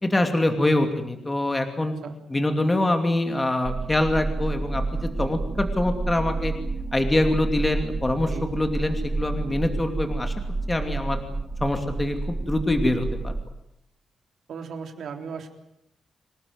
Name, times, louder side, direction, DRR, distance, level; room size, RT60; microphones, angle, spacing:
voice 1, 0.0-1.9 2.3-6.5 6.9-10.3 10.7-11.2 11.6-13.3, left 1 dB, 15° left, 6 dB, 2.7 m, -24 dB
sound 1, 3.6-13.4, right 3 dB, 20° right, 2.5 m, -30 dB
voice 2, 14.5-15.5, right 6 dB, 65° right, 5 dB, 3.7 m, -36 dB
27.0 x 19.0 x 9.6 m, 0.78 s
wide cardioid pair, 165°, 0 cm